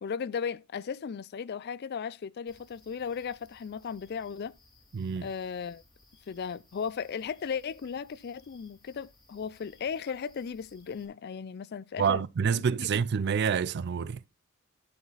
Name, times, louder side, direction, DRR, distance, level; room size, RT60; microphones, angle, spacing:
voice 1, 0.0-4.6 5.2-5.8 6.3-12.2 12.5-12.9, left 6 dB, 50° left, 0.4 m, -36 dB
sound 1, 2.5-11.1, left 2 dB, 20° left, 2.6 m, -61 dB
voice 2, 4.9-5.3 12.0-14.2, right 6 dB, 50° right, 0.4 m, -27 dB
12.5 x 5.0 x 3.9 m
head